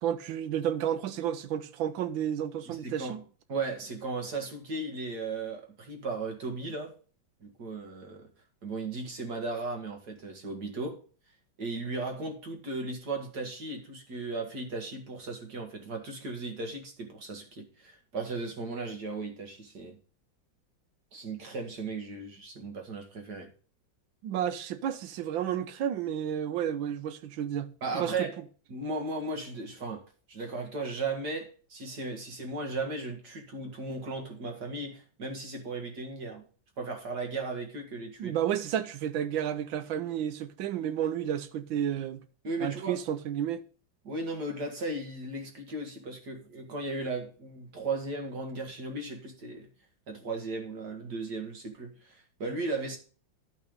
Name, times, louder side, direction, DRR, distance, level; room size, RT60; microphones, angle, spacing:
voice 1, 0.0-3.2 24.2-28.3 38.2-42.2 42.6-43.6, right 10 dB, 85° right, 1.6 m, -31 dB
voice 2, 2.7-3.2 3.5-6.9 7.4-8.3 8.6-11.0 11.6-20.0 21.1-23.5 27.8-28.3 28.7-30.0 30.3-36.4 36.8-38.4 42.4-43.0 44.0-49.7 50.1-53.0, right 3 dB, 55° right, 2.4 m, -36 dB
11.0 x 5.6 x 5.3 m
omnidirectional pair, 2.1 m